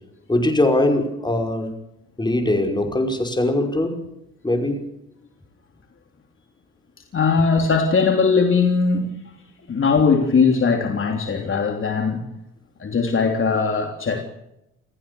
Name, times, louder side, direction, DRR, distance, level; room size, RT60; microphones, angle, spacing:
voice 1, 0.3-1.7 2.2-4.1 4.4-4.9, left 1 dB, 15° left, 5.5 m, -21 dB
voice 2, 7.1-9.1 9.7-12.2 12.8-14.3, left 5 dB, 45° left, 3.2 m, -19 dB
28.0 x 15.0 x 7.0 m
cardioid pair, 90°, 30 cm